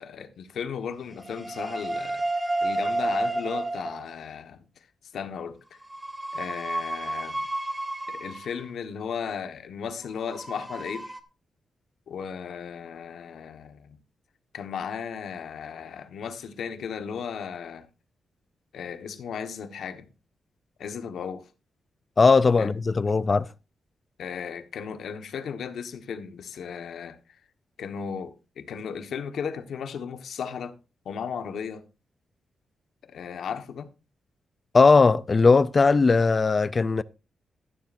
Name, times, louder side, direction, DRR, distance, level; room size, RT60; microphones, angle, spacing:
voice 1, 0.0-2.2 2.6-4.7 5.1-5.8 6.3-7.5 8.1-11.1 12.1-14.0 14.5-17.9 18.7-20.1 20.8-21.5 22.6-22.7 24.2-27.2 27.8-30.7 31.0-31.8 33.0-33.9, left 7 dB, 75° left, 1.3 m, -35 dB
sound 1, 1.2-4.1 5.8-8.6 10.2-11.2, right 2 dB, 10° right, 0.9 m, -31 dB
voice 2, 22.2-23.5 34.7-37.0, left 4 dB, 30° left, 0.4 m, -19 dB
13.5 x 11.5 x 2.6 m
wide cardioid pair, 160°, 0 cm